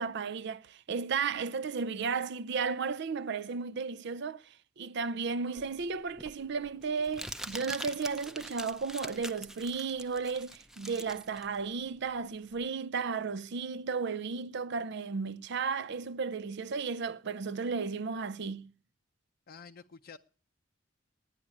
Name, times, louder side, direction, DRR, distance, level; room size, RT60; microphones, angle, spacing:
voice 1, 0.0-4.4 4.8-18.7, right 5 dB, 60° right, 0.5 m, -34 dB
Crumpling crinkling, 5.6-12.6, equal, 5° right, 0.5 m, -44 dB
voice 2, 19.5-20.2, left 5 dB, 50° left, 0.5 m, -49 dB
9.9 x 9.9 x 8.3 m
head